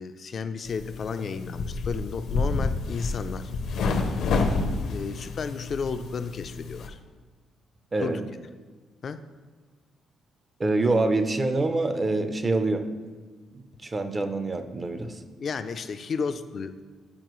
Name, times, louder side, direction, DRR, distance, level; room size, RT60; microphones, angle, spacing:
voice 1, 0.0-3.5 4.9-7.0 8.0-8.2 9.0-9.2 15.4-16.8, left 5 dB, 50° left, 10 dB, 0.4 m, -33 dB
sound 1, 0.6-6.9, left 3 dB, 75° left, 0.7 m, -29 dB
voice 2, 7.9-8.2 10.6-12.9 13.5-15.2, right 2 dB, 30° right, 8 dB, 0.6 m, -26 dB
9.7 x 4.4 x 3.1 m, 1.4 s
cardioid pair, 90°, 0 cm